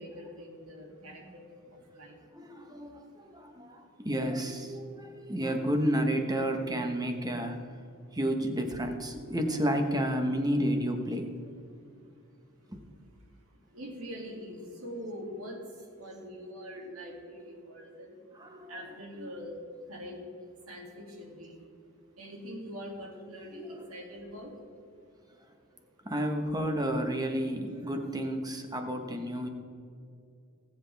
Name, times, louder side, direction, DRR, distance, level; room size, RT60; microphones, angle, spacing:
voice 1, 0.0-2.2 2.4-2.5 2.8-3.1 11.7-12.3 12.6-12.7 13.3-20.2 20.6-21.7 22.1-24.6, equal, 85° right, 0 dB, 2.6 m, -44 dB
voice 2, 2.3-7.6 8.1-11.3 18.3-18.8 26.0-29.5, equal, 20° right, 5 dB, 1.2 m, -31 dB
19.5 x 8.1 x 3.5 m, 2.5 s
head